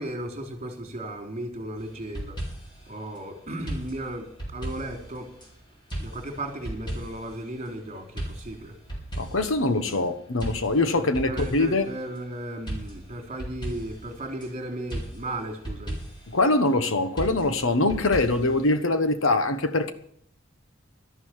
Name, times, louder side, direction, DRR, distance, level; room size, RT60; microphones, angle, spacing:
voice 1, 0.0-2.4 2.9-5.3 6.0-8.8 11.0-16.0, right 1 dB, 35° right, 3.6 m, -35 dB
sound 1, 1.8-2.9 3.7-5.5 5.9-7.4 8.2-10.0 10.4-11.9 12.7-14.5 14.9-16.3 17.2-18.7, right 1 dB, 25° left, 5.1 m, -36 dB
voice 2, 9.2-11.9 16.3-19.9, left 2 dB, 75° left, 1.3 m, -23 dB
12.5 x 11.0 x 7.4 m
head